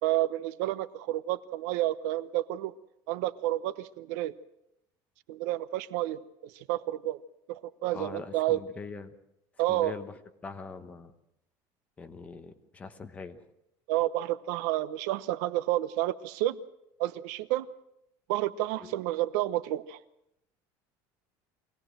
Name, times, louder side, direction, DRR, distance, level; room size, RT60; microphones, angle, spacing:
voice 1, 0.0-2.7 3.1-4.3 5.3-7.2 7.5-8.6 9.6-9.9 13.9-16.6 17.0-17.7 18.3-20.0, right 15 dB, 90° right, 16 dB, 0.9 m, -30 dB
voice 2, 7.9-9.1 9.7-10.1 10.4-11.1 12.0-13.4 18.9-19.0, left 4 dB, 15° left, 8 dB, 1.2 m, -42 dB
24.0 x 17.5 x 7.7 m, 0.81 s
cardioid pair, 175°, 9 cm